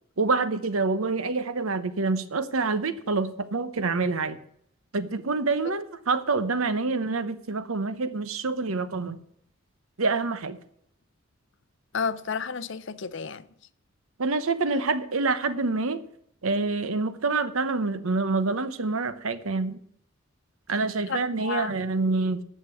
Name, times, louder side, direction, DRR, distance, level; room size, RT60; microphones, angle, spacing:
voice 1, 0.2-4.4 4.9-9.2 10.0-10.6 14.2-16.0 16.4-19.8 20.7-22.4, right 3 dB, 75° right, 0.9 m, -27 dB
voice 2, 11.9-13.5 21.1-21.7, left 5 dB, 55° left, 0.6 m, -31 dB
9.9 x 6.7 x 8.3 m
head